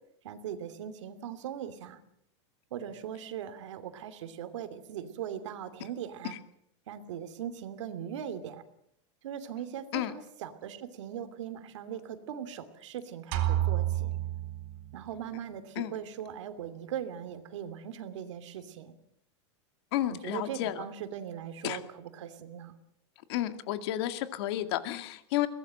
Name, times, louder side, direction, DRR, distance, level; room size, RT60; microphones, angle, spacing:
voice 1, 0.2-2.0 2.7-6.4 6.9-8.7 9.2-14.1 14.9-19.0 20.1-22.7, right 9 dB, 80° right, 10 dB, 2.8 m, -40 dB
sound 1, 13.3-15.2, right 13 dB, 50° right, 4.0 m, -30 dB
voice 2, 19.9-20.9 21.6-21.8 23.3-25.5, left 13 dB, 60° left, 9 dB, 2.1 m, -31 dB
22.5 x 18.0 x 7.8 m, 0.75 s
supercardioid pair, 155°, 15 cm